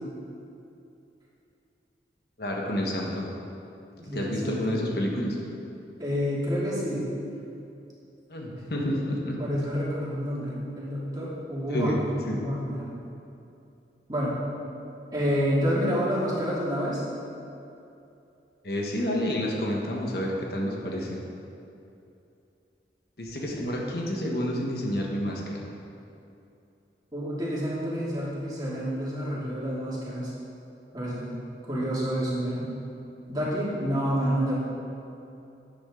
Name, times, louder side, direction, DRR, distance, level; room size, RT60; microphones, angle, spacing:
voice 1, 2.4-3.3 4.1-5.4 8.3-9.4 11.7-12.0 12.3-12.5 18.6-21.2 23.2-25.6, left 1 dB, 60° left, -1 dB, 1.4 m, -29 dB
voice 2, 4.0-4.6 6.0-7.2 8.6-8.7 9.4-12.0 12.3-13.0 14.1-14.4 15.1-17.0 27.1-30.3 30.9-31.4 31.7-32.7 33.3-34.5, equal, 25° right, -8 dB, 2.6 m, -28 dB
12.5 x 8.8 x 3.8 m, 2.7 s
head